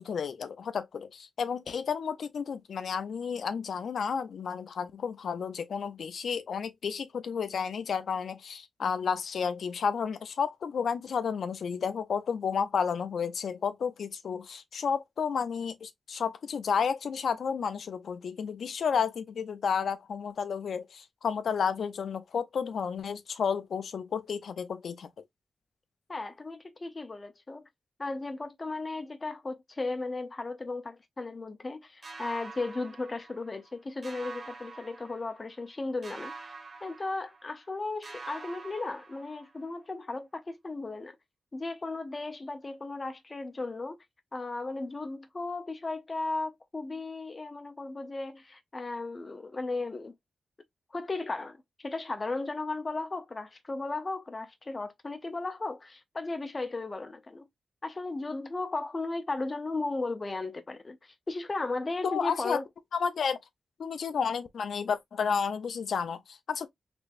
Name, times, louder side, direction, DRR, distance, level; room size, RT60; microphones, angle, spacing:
voice 1, 0.0-25.1 62.0-62.6 62.9-63.4 63.8-66.7, left 6 dB, 80° left, 0.5 m, -31 dB
voice 2, 26.1-27.7 28.0-36.3 36.8-41.2 41.5-44.0 44.3-50.1 50.9-57.5 57.8-62.6, left 3 dB, 35° left, 0.7 m, -35 dB
sound 1, 32.0-33.7 34.0-35.7 36.0-37.7 38.0-39.7, right 4 dB, 45° right, 0.7 m, -46 dB
3.4 x 3.1 x 2.5 m
cardioid pair, 70°, 0 cm